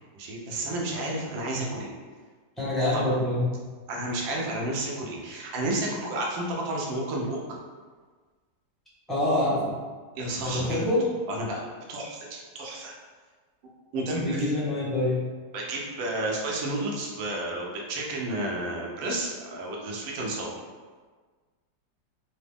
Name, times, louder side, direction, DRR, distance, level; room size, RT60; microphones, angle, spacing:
voice 1, 0.1-1.9 2.9-3.0 3.9-7.4 10.2-10.8 11.4-12.9 13.9-14.4 15.5-20.5, right 1 dB, 85° right, -2 dB, 1.4 m, -31 dB
voice 2, 2.6-3.5 9.1-9.8 10.4-11.0 14.1-15.2, left 1 dB, ahead, -11 dB, 0.8 m, -26 dB
3.9 x 2.1 x 3.5 m, 1.4 s
omnidirectional pair, 2.0 m